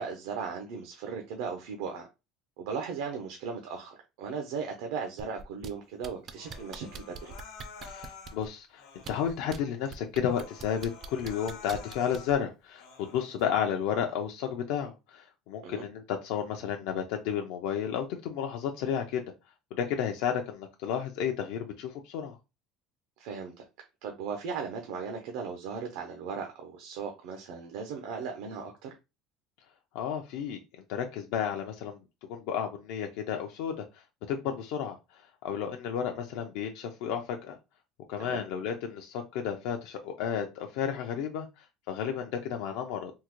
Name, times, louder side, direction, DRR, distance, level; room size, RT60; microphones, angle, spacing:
voice 1, 0.0-2.1 2.6-7.4 15.6-15.8 23.2-23.6 24.0-28.9 38.2-38.4, right 5 dB, 85° right, 0.6 m, -37 dB
sound 1, 5.2-5.7 6.0-8.5 9.0-9.6 9.9-12.3 13.4-13.5, right 6 dB, 30° right, 0.3 m, -43 dB
Human voice, 6.3-8.4 8.8-9.4 9.9-10.0 10.2-12.4 12.8-13.4, left 5 dB, 90° left, 1.0 m, -49 dB
voice 2, 7.8-19.3 19.7-22.4 29.9-30.6 30.9-32.0 32.3-37.6 38.1-43.1, left 8 dB, 70° left, 0.4 m, -32 dB
3.6 x 2.1 x 3.0 m
cardioid pair, 180°, 0 cm